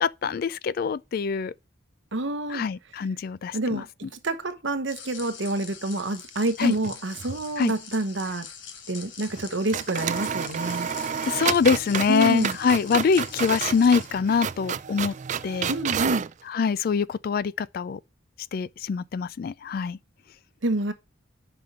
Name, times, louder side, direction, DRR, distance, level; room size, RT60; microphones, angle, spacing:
voice 1, 0.0-1.5 2.5-3.8 6.6-6.7 7.6-7.7 11.3-15.1 15.4-15.8 16.5-18.0 18.5-20.0, left 6 dB, 50° left, 0.3 m, -24 dB
voice 2, 2.1-2.6 3.5-3.9 4.2-8.5 8.9-10.9 12.1-12.6 15.7-16.3 20.6-20.9, right 2 dB, 70° right, 1.0 m, -27 dB
sound 1, 4.9-14.1, left 7 dB, 70° left, 1.2 m, -43 dB
sound 2, 6.6-7.4 7.7-7.8 9.3-9.5 9.7-16.3, right 7 dB, 40° right, 0.3 m, -30 dB
5.7 x 5.1 x 6.6 m
head